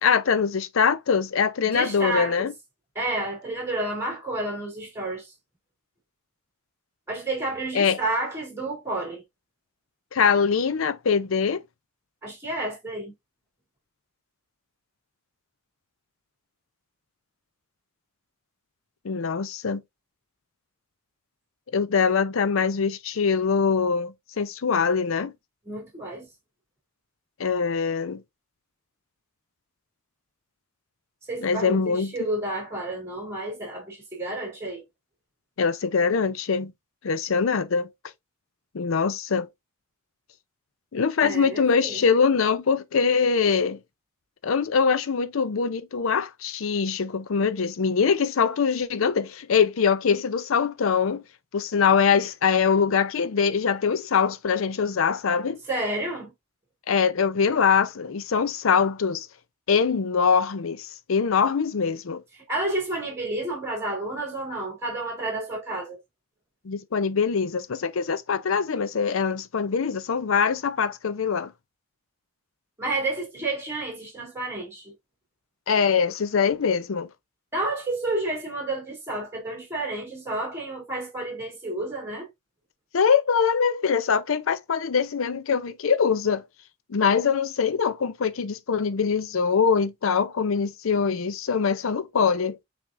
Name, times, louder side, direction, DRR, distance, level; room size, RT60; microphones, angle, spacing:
voice 1, 0.0-2.5 7.7-8.0 10.1-11.6 19.0-19.8 21.7-25.3 27.4-28.2 31.4-32.1 35.6-36.7 37.0-37.9 38.7-39.5 40.9-43.8 44.4-51.2 51.5-55.6 56.9-59.3 59.7-62.2 66.6-71.5 75.7-77.1 82.9-86.4 86.9-92.6, left 6 dB, 65° left, 0.5 m, -23 dB
voice 2, 1.6-2.5 3.0-5.3 7.1-9.2 12.2-13.1 25.7-26.3 31.3-34.8 41.2-42.0 55.7-56.3 62.5-66.0 72.8-74.9 77.5-82.3, right 2 dB, 10° right, 2.1 m, -30 dB
6.0 x 3.4 x 2.5 m
head